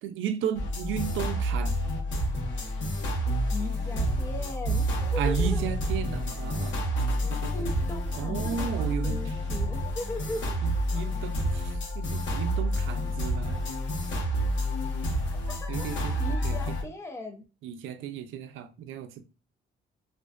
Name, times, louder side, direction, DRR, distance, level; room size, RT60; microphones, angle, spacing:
voice 1, 0.0-1.8 5.2-6.8 7.2-7.7 8.1-9.4 10.6-13.6 15.7-16.2 16.4-16.8 17.6-19.2, right 8 dB, 80° right, 0.4 m, -34 dB
sound 1, 0.5-16.8, equal, 75° left, 1.0 m, -29 dB
voice 2, 3.5-5.6 7.2-10.5 10.9-11.0 15.6-15.9 16.2-17.4, left 1 dB, 15° left, 0.6 m, -38 dB
2.5 x 2.1 x 2.4 m
cardioid pair, 90°, 20 cm